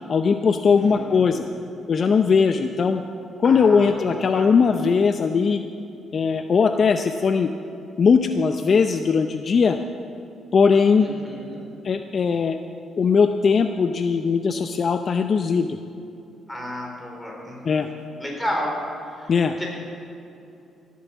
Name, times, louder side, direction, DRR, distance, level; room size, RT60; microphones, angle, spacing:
voice 1, 0.1-1.4 1.9-3.0 3.4-5.6 6.1-7.5 8.0-9.8 10.5-11.1 11.8-12.6 13.0-15.8 17.6-17.9 19.3-19.5, left 5 dB, 45° left, 7 dB, 0.6 m, -19 dB
voice 2, 0.7-1.6 3.4-4.5 11.0-11.6 16.5-18.8 19.1-19.3 19.6-19.7, equal, 10° left, -2 dB, 4.2 m, -33 dB
16.5 x 8.5 x 7.2 m, 2.7 s
cardioid pair, 90°, 0 cm